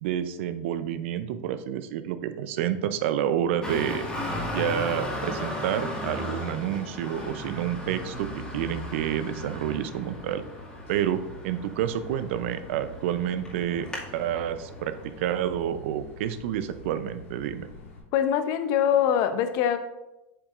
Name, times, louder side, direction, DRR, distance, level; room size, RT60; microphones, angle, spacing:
voice 1, 0.0-4.0 4.5-10.4 10.9-13.9 14.1-17.7, right 10 dB, 75° right, 11 dB, 0.5 m, -29 dB
Traffic noise roadway noise, 3.6-15.4, left 1 dB, 10° left, 2.1 m, -36 dB
sound 1, 7.8-18.0, left 1 dB, 90° left, 1.9 m, -46 dB
voice 2, 18.1-19.8, left 9 dB, 60° left, 10 dB, 0.7 m, -23 dB
8.2 x 6.0 x 2.5 m, 0.95 s
hypercardioid pair, 100°, 7 cm